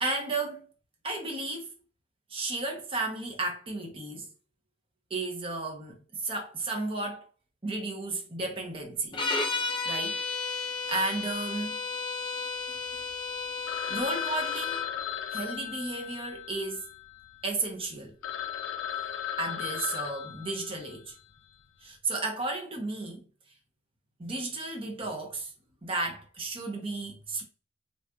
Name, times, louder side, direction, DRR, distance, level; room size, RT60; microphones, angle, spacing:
voice 1, 0.0-0.7 1.0-1.7 2.3-4.3 5.1-7.3 7.6-9.2 9.8-10.2 10.5-10.6 10.9-11.8 12.7-13.0 13.9-14.8 15.3-16.8 17.4-18.2 19.4-21.1 21.8-23.2 24.2-25.5 25.8-27.4, right 2 dB, 30° right, 0.7 m, -33 dB
sound 1, 9.1-14.9, left 4 dB, 25° left, 0.5 m, -33 dB
Telephone, 13.7-17.5 17.9-18.0 18.2-21.1, left 10 dB, 90° left, 0.4 m, -36 dB
3.9 x 2.4 x 2.3 m
head